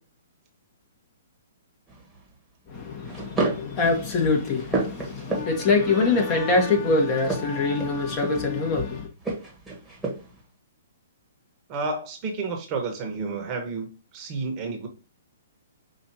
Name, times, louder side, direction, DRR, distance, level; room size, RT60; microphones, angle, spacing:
sound 1, 1.9-2.2 3.1-3.7 4.2-5.8 7.1-8.6 9.2-10.4, right 3 dB, 5° right, 1.4 m, -31 dB
voice 1, 2.7-9.1, left 3 dB, 30° left, 1.4 m, -24 dB
voice 2, 11.7-14.9, right 4 dB, 30° right, 1.1 m, -31 dB
5.6 x 2.7 x 2.8 m
hypercardioid pair, 130°, 0 cm